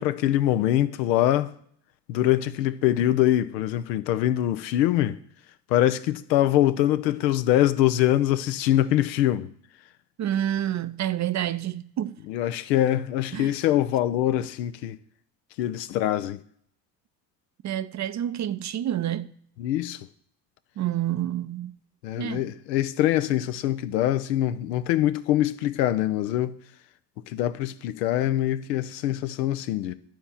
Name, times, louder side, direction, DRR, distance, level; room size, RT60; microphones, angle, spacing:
voice 1, 0.0-1.5 2.1-5.2 5.7-9.5 12.3-15.0 15.6-16.4 19.6-20.1 22.0-26.6 27.3-29.9, left 13 dB, 75° left, 0.8 m, -24 dB
voice 2, 10.2-12.2 13.3-13.5 17.6-19.4 20.8-21.8 22.2-22.5, right 11 dB, 35° right, 0.6 m, -28 dB
12.0 x 4.4 x 7.2 m
hypercardioid pair, 55°, 50 cm